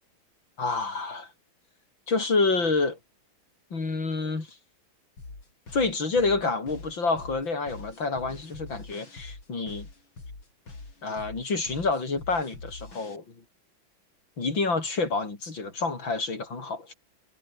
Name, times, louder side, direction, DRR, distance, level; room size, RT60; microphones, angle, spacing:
voice 1, 0.6-1.3 2.1-3.0 3.7-4.6 5.7-9.9 11.0-13.4 14.4-16.9, left 3 dB, 70° left, 5.2 m, -28 dB
sound 1, 5.2-13.2, left 3 dB, 90° left, 6.5 m, -44 dB
omnidirectional pair, 2.2 m